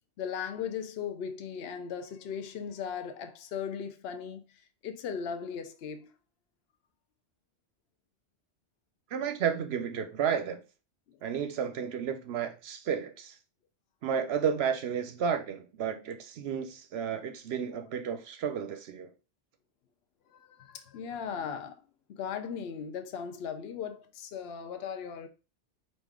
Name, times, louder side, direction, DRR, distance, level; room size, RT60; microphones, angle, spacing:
voice 1, 0.2-4.4 4.8-6.1 11.1-11.2 17.7-17.8 20.3-21.8 22.1-25.3, left 7 dB, 65° left, 0.8 m, -38 dB
voice 2, 9.1-10.6 11.2-13.3 14.0-19.1, right 7 dB, 65° right, 0.8 m, -32 dB
5.0 x 2.6 x 3.6 m
omnidirectional pair, 1.2 m